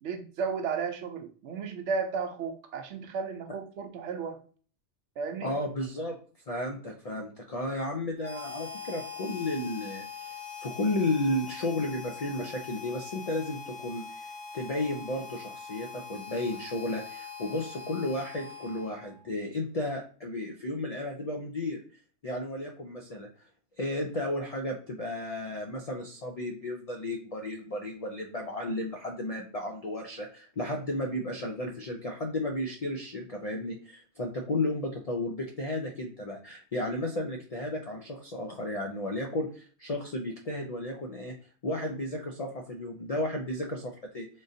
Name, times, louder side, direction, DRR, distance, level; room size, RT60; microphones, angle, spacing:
voice 1, 0.0-4.4 5.2-5.6, right 5 dB, 75° right, 0.9 m, -34 dB
voice 2, 5.4-6.2 6.5-21.8 22.2-23.3 23.8-41.3 41.6-44.3, left 1 dB, 60° left, 0.4 m, -33 dB
Harmonica, 8.2-19.2, left 6 dB, 35° right, 0.9 m, -42 dB
3.7 x 2.5 x 2.6 m
omnidirectional pair, 1.2 m